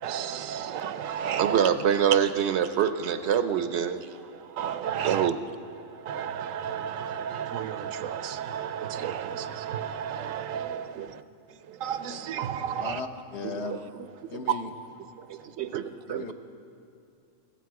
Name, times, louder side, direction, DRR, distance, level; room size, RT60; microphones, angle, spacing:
voice 1, 0.0-1.7 4.6-5.3 6.0-11.2 11.8-13.0 14.5-14.6, right 8 dB, 85° right, 12 dB, 1.0 m, -32 dB
voice 2, 1.4-4.0 5.0-5.4 11.0-11.1 11.7-11.8 13.4-14.1 14.3-14.4 15.3-16.3, right 8 dB, 65° right, 10 dB, 0.7 m, -26 dB
voice 3, 12.8-13.9 14.3-14.7 16.1-16.3, left 4 dB, 60° left, 6 dB, 1.1 m, -36 dB
15.5 x 14.5 x 4.7 m, 2.5 s
omnidirectional pair, 1.4 m